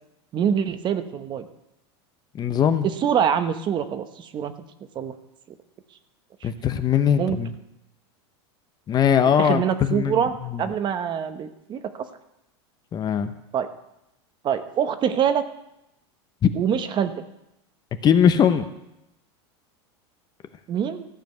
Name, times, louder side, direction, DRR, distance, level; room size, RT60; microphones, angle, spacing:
voice 1, 0.3-1.5 3.0-4.5 4.9-5.1 6.4-6.5 7.2-7.4 9.4-10.3 10.6-12.1 13.5-13.7 14.4-15.4 16.6-17.1 20.7-21.1, right 8 dB, 35° right, 10 dB, 0.9 m, -24 dB
voice 2, 2.3-2.9 6.4-7.5 8.9-10.6 12.9-13.3 16.4-16.5 18.0-18.6, left 8 dB, 30° left, 10 dB, 0.8 m, -20 dB
14.0 x 5.2 x 7.8 m, 0.85 s
supercardioid pair, 115°, 14 cm